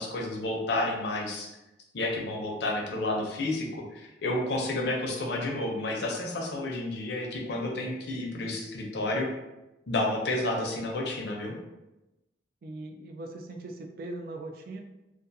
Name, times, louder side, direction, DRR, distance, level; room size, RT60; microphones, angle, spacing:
voice 1, 0.0-1.5 1.9-9.3 9.9-11.6, left 2 dB, 70° left, 0 dB, 0.5 m, -30 dB
voice 2, 12.6-14.8, right 2 dB, 55° right, 3 dB, 0.3 m, -40 dB
2.4 x 2.3 x 2.6 m, 0.98 s
head